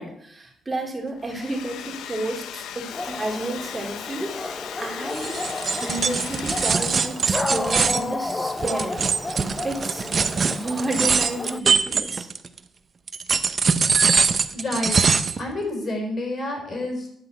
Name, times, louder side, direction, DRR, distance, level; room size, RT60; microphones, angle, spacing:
voice 1, 0.0-5.4 5.8-9.4 9.6-10.1 10.5-12.3, right 2 dB, 20° right, -1 dB, 2.9 m, -31 dB
Domestic sounds home sounds, 1.1-7.1, left 9 dB, 80° left, 0.7 m, -37 dB
Dog, 2.9-11.6, left 3 dB, 20° left, 0.6 m, -32 dB
sound 1, 5.1-12.6 13.1-15.4, right 5 dB, 40° right, 0.6 m, -23 dB
voice 2, 14.5-15.1 15.4-17.1, left 1 dB, 45° left, 1 dB, 4.6 m, -29 dB
10.0 x 5.4 x 8.2 m, 0.70 s
cardioid pair, 90°, 0 cm